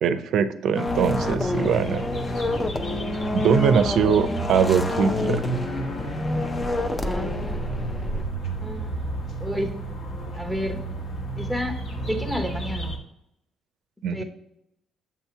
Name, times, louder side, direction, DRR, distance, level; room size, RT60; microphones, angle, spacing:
voice 1, 0.0-2.0 3.3-5.4 14.0-14.2, right 6 dB, 70° right, 10 dB, 0.5 m, -22 dB
sound 1, 0.7-8.2, left 2 dB, 20° left, 0.5 m, -28 dB
sound 2, 0.9-13.0, right 1 dB, 60° left, 1.3 m, -31 dB
voice 2, 7.0-7.7 8.6-9.0 9.4-9.7 10.3-10.9 11.4-11.8 12.1-13.0 14.1-14.2, equal, ahead, 4 dB, 0.9 m, -30 dB
7.4 x 2.8 x 5.7 m, 0.80 s
cardioid pair, 105°, 0 cm